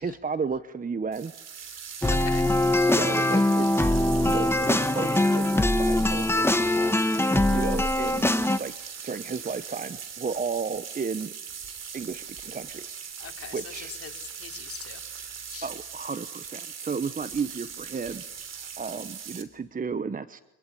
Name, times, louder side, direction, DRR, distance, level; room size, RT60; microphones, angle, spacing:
voice 1, 0.0-1.3 2.8-3.9 4.2-5.4 5.8-6.8 7.5-11.3 11.9-13.1 13.5-13.9 15.6-20.4, right 5 dB, 25° right, 13 dB, 1.0 m, -33 dB
sound 1, 1.1-19.4, right 7 dB, 55° right, 3.4 m, -40 dB
sound 2, 2.0-8.6, left 1 dB, 10° left, 1.4 m, -22 dB
voice 2, 2.1-2.5 13.2-15.0 15.5-15.7, left 8 dB, 50° left, 4 dB, 3.2 m, -41 dB
25.5 x 22.5 x 10.0 m, 0.92 s
cardioid pair, 90°, 31 cm